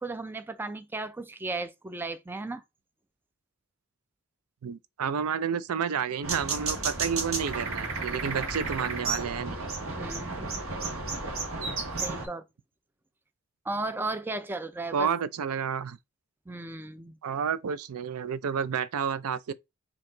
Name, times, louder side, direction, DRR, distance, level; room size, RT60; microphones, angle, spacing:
voice 1, 0.0-2.6 10.0-10.6 12.0-12.4 13.7-15.1 16.5-17.1, right 2 dB, 10° right, 0.4 m, -35 dB
voice 2, 4.6-9.6 14.9-16.0 17.2-19.5, right 7 dB, 85° right, 0.4 m, -30 dB
sound 1, 6.2-12.3, right 3 dB, 70° right, 1.4 m, -32 dB
4.5 x 2.8 x 3.8 m
head